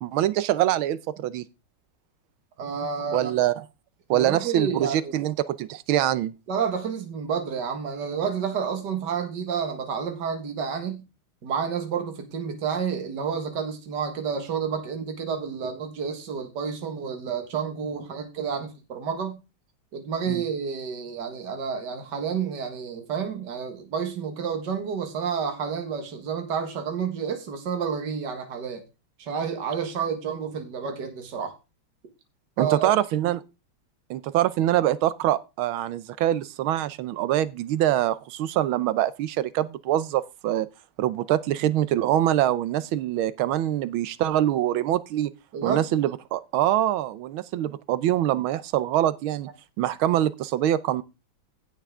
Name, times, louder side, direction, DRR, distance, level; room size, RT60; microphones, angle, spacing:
voice 1, 0.0-1.4 3.1-3.5 4.1-6.3 20.3-20.4 32.6-33.4 34.1-40.7 41.0-45.3 45.6-49.5 49.8-51.0, right 12 dB, 90° right, 1.6 m, -24 dB
voice 2, 2.6-3.3 4.1-5.2 6.5-11.0 11.4-19.4 19.9-28.8 29.2-31.6 32.6-32.9 45.5-45.8, right 6 dB, 60° right, 2.2 m, -30 dB
16.0 x 5.8 x 3.7 m
omnidirectional pair, 2.2 m